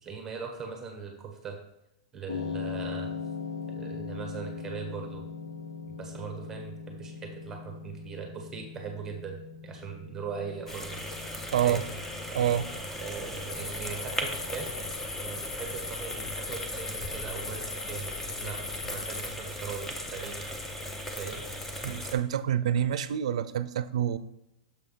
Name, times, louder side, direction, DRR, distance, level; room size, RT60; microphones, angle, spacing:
voice 1, 0.0-1.6 2.1-3.1 3.7-5.2 5.9-9.4 9.6-11.0 11.6-11.9 12.9-14.8 15.2-20.4 21.2-21.4, right 6 dB, 15° right, 1.1 m, -40 dB
sound 1, 2.3-20.5, left 5 dB, 90° left, 1.1 m, -42 dB
sound 2, 10.7-22.2, equal, 10° left, 0.7 m, -37 dB
voice 2, 11.5-11.8 12.3-12.7 21.8-24.2, right 10 dB, 80° right, 0.4 m, -27 dB
sound 3, 13.5-19.3, left 4 dB, 30° left, 1.0 m, -40 dB
6.8 x 3.3 x 5.5 m
supercardioid pair, 150°, 3 cm